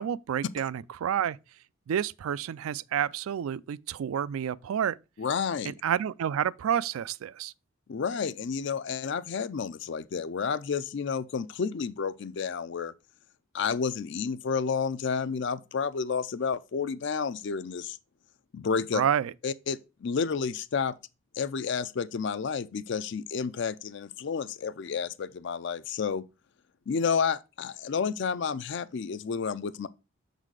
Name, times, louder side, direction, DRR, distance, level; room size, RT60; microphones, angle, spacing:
voice 1, 0.0-1.4 1.9-5.0 5.6-7.5 18.9-19.3, right 9 dB, 80° right, 0.3 m, -29 dB
voice 2, 5.2-5.7 7.9-12.9 13.5-18.0 18.5-19.0 19.4-20.9 21.4-26.3 26.9-29.9, left 6 dB, 55° left, 0.4 m, -30 dB
6.4 x 4.0 x 4.7 m
head